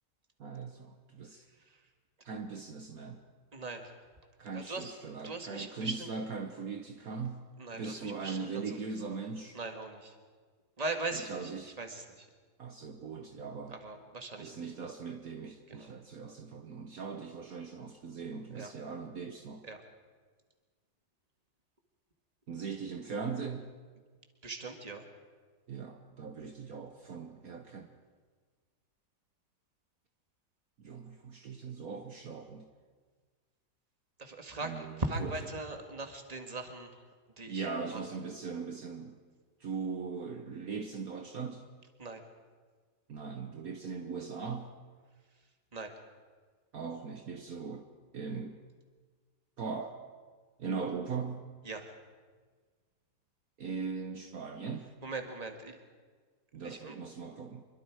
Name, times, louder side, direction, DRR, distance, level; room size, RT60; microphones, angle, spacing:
voice 1, 0.4-1.4 2.2-3.2 4.4-7.5 7.8-9.6 11.1-11.8 12.6-13.8 14.4-19.6 22.5-23.7 25.7-27.9 30.8-32.7 34.6-35.6 37.5-39.2 39.6-41.7 43.1-44.8 46.7-48.6 49.6-50.1 50.6-51.5 53.6-55.0 56.5-57.6, right 5 dB, 60° right, 5 dB, 1.5 m, -40 dB
voice 2, 3.5-3.9 4.5-4.9 5.2-6.1 7.6-8.8 9.5-10.2 10.8-12.3 13.7-14.7 15.7-15.9 18.5-18.7 19.6-19.8 24.4-25.1 34.2-36.9 37.4-38.0 42.0-42.2 45.7-45.9 51.6-51.9 55.0-55.8 56.6-56.9, right 2 dB, 25° right, 5 dB, 1.9 m, -40 dB
26.0 x 23.0 x 4.8 m, 1.5 s
omnidirectional pair, 1.8 m